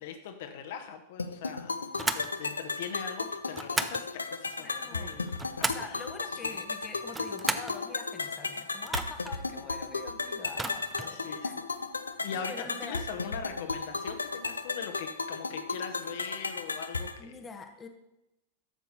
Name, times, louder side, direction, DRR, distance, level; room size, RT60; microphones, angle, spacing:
voice 1, 0.0-6.1 6.4-6.6 10.6-11.6 12.2-17.3, left 7 dB, 55° left, 6 dB, 1.1 m, -42 dB
sound 1, 1.2-17.2, left 4 dB, 75° left, 0.6 m, -35 dB
sound 2, 2.0-2.3 3.5-4.0 5.1-5.9 7.0-7.8 8.8-9.4 10.5-11.1, right 3 dB, 10° right, 0.6 m, -34 dB
voice 2, 4.6-11.7 12.3-13.0 17.2-17.9, left 4 dB, 20° left, 5 dB, 1.1 m, -45 dB
12.0 x 7.2 x 4.2 m, 0.90 s
figure-of-eight pair, 90°, 0 cm